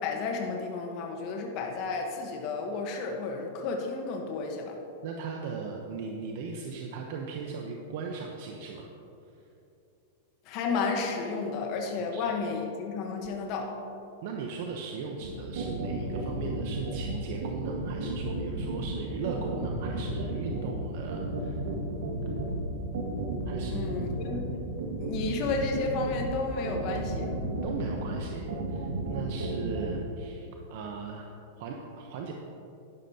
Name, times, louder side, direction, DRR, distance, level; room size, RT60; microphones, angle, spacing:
voice 1, 0.0-4.8 10.4-13.8 23.7-24.6 25.0-27.3, left 4 dB, 45° left, 1 dB, 1.1 m, -32 dB
voice 2, 5.0-8.9 12.1-12.3 14.2-21.6 23.5-24.1 27.6-32.3, right 5 dB, 60° right, 1 dB, 0.8 m, -38 dB
sound 1, 15.2-29.9, right 2 dB, 85° right, 1.9 m, -33 dB
11.0 x 11.0 x 2.8 m, 2.7 s
supercardioid pair, 140°, 0 cm